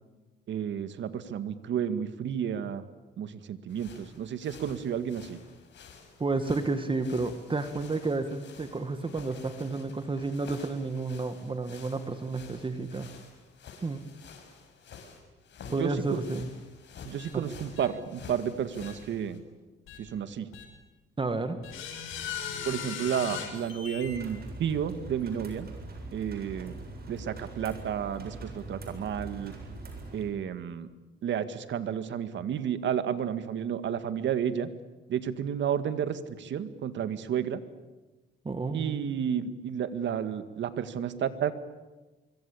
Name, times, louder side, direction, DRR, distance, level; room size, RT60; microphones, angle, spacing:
voice 1, 0.5-2.8 3.2-5.4 15.6-16.2 17.0-19.4 20.0-20.5 22.6-25.7 26.1-26.7 27.1-29.5 30.1-30.9 31.2-34.7 35.1-37.6 38.7-41.5, right 8 dB, 70° right, 11 dB, 1.9 m, -31 dB
sound 1, 3.7-19.4, left 6 dB, 65° left, 6.2 m, -50 dB
voice 2, 6.2-13.1 13.8-14.0 15.7-16.5 17.3-17.4 21.2-21.6 38.4-39.0, right 3 dB, 25° right, 9 dB, 2.0 m, -31 dB
sound 2, 17.2-17.3 17.8-17.9 18.8-18.9 19.9-20.0 20.5-20.6 21.6-24.2, left 7 dB, 85° left, 6.0 m, -38 dB
sound 3, 24.0-30.3, right 2 dB, 50° right, 7.7 m, -42 dB
25.0 x 23.5 x 8.6 m, 1.2 s
cardioid pair, 90°, 20 cm